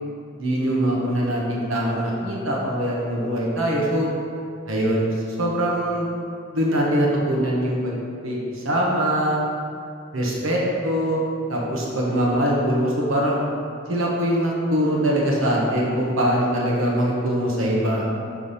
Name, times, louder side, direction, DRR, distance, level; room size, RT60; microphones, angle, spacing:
voice 1, 0.4-4.1 4.7-6.1 6.5-9.4 10.1-11.2 11.5-13.4 13.9-18.0, equal, 80° right, -3 dB, 1.2 m, -22 dB
6.5 x 3.6 x 5.5 m, 2.3 s
head